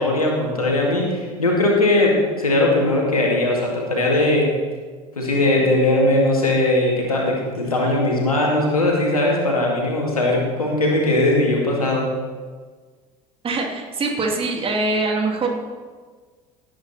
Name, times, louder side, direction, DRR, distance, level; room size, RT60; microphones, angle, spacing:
voice 1, 0.0-4.5 5.2-12.1, left 2 dB, 85° left, -1 dB, 2.3 m, -19 dB
voice 2, 13.4-15.5, right 3 dB, 30° right, 0 dB, 2.8 m, -23 dB
17.5 x 8.8 x 4.3 m, 1.5 s
figure-of-eight pair, 65°, 18 cm